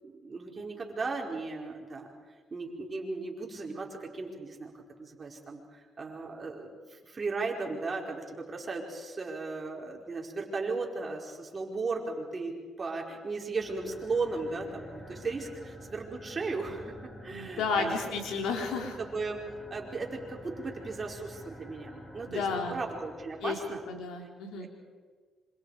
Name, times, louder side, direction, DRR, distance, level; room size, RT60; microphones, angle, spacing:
voice 1, 0.0-2.1 2.5-4.7 5.0-17.0 17.2-18.1 18.6-19.4 19.7-23.8 24.6-24.7, right 3 dB, 35° right, 0 dB, 5.1 m, -36 dB
sound 1, 13.5-24.0, equal, 15° left, 5.3 m, -48 dB
voice 2, 17.3-19.0 22.3-22.8 23.4-23.6 23.9-24.7, left 5 dB, 85° left, 3 dB, 3.8 m, -32 dB
26.5 x 26.5 x 5.1 m, 1.5 s
cardioid pair, 90°, 0 cm